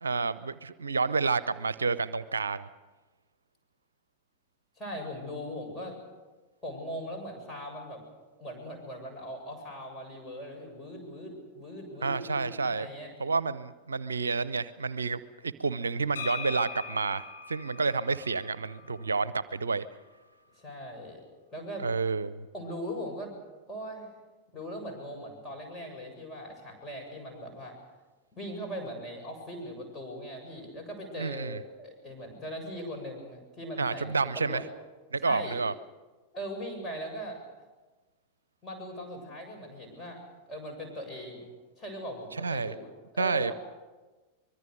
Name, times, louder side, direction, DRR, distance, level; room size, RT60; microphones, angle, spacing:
voice 1, 0.0-2.7 12.0-12.9 13.2-19.9 21.8-22.5 31.2-31.6 33.8-34.6 35.1-35.7 42.4-42.7 43.2-43.5, right 4 dB, 75° right, 17 dB, 0.6 m, -29 dB
voice 2, 4.8-6.0 6.6-8.0 8.4-13.1 20.6-21.9 22.5-23.3 23.7-24.1 24.5-27.8 28.3-34.6 35.2-35.6 36.3-37.4 38.6-40.2 40.5-41.5 41.8-43.5, equal, 20° left, 2 dB, 7.7 m, -40 dB
sound 1, 16.2-19.9, left 6 dB, 65° left, 4.2 m, -42 dB
24.5 x 22.0 x 6.7 m, 1.2 s
figure-of-eight pair, 90°, 0 cm